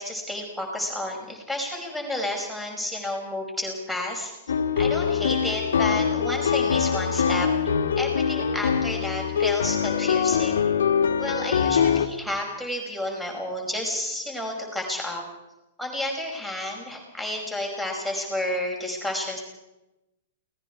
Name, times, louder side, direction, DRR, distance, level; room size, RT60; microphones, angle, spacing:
voice 1, 0.0-4.3 4.8-7.5 8.0-10.6 11.2-15.2 15.8-19.4, left 1 dB, ahead, 1 dB, 5.4 m, -31 dB
sound 1, 4.5-12.1, left 7 dB, 70° left, 1.6 m, -23 dB
29.0 x 19.0 x 4.8 m, 0.94 s
figure-of-eight pair, 105°, 0 cm